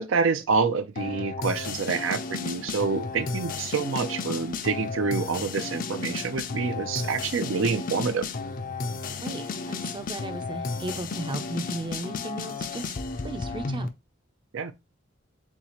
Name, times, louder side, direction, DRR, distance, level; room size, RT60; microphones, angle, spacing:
voice 1, 0.0-8.3 14.5-14.7, right 5 dB, 75° right, 0.5 m, -27 dB
sound 1, 1.0-13.9, left 4 dB, 45° left, 0.5 m, -33 dB
voice 2, 9.2-12.9 13.2-13.9, right 2 dB, 25° right, 0.5 m, -35 dB
7.1 x 2.4 x 2.9 m
head